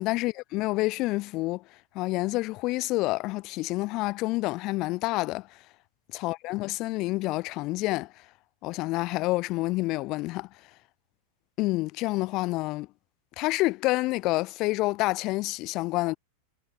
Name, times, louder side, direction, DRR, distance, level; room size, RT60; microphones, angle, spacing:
voice 1, 0.0-1.6 1.9-5.5 6.1-8.1 8.6-10.5 11.6-12.9 13.4-16.2, left 21 dB, 40° left, 6.0 m, -28 dB
supercardioid pair, 150°, 0 cm